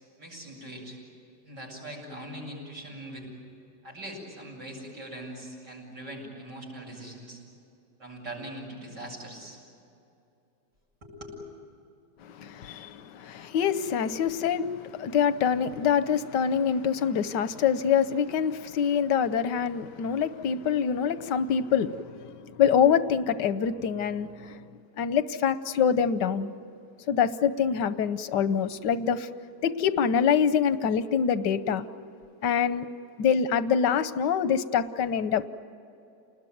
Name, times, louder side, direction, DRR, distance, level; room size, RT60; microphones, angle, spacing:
voice 1, 0.2-1.0 1.4-3.3 3.8-7.4 8.0-9.6 11.0-11.4, right 1 dB, 80° right, -2 dB, 8.5 m, -41 dB
voice 2, 12.2-24.6 25.0-26.5 27.1-29.3 29.6-31.9 32.4-32.9 33.2-35.4, left 7 dB, 85° left, 13 dB, 1.5 m, -25 dB
29.0 x 20.5 x 9.2 m, 2.7 s
omnidirectional pair, 1.8 m